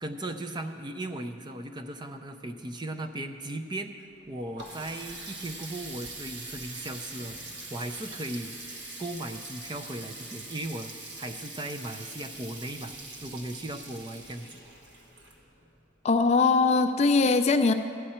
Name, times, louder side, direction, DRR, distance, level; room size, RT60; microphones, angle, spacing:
voice 1, 0.0-3.9 4.3-7.4 7.7-8.5 9.0-13.0 13.2-14.6, right 1 dB, 25° right, 7 dB, 0.5 m, -37 dB
Water tap faucet, 4.1-15.8, right 2 dB, 65° right, 1.4 m, -43 dB
voice 2, 16.0-17.7, left 4 dB, 35° left, 8 dB, 0.4 m, -21 dB
14.0 x 10.0 x 4.3 m, 2.5 s
head